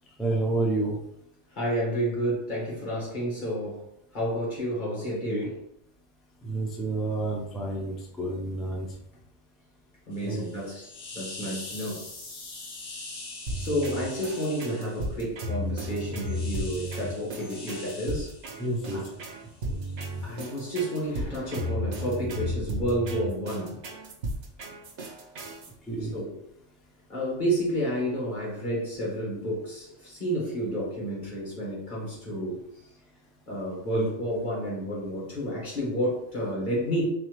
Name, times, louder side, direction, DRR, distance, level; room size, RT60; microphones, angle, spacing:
voice 1, 0.2-1.0 6.4-8.9 10.2-10.4 18.6-19.0 25.9-26.1, right 2 dB, ahead, -2 dB, 0.3 m, -29 dB
voice 2, 1.5-3.8 4.1-5.6 10.1-12.0 13.6-18.3 18.9-19.0 20.2-23.8 26.1-26.4 27.1-32.6 33.5-37.1, equal, 45° left, -5 dB, 1.7 m, -30 dB
sound 1, 10.1-15.2 16.2-20.4 20.9-23.3, left 2 dB, 80° left, 1.4 m, -44 dB
sound 2, 13.5-25.7, equal, 75° right, 1.1 m, -34 dB
4.1 x 3.0 x 3.1 m, 0.77 s
omnidirectional pair, 1.2 m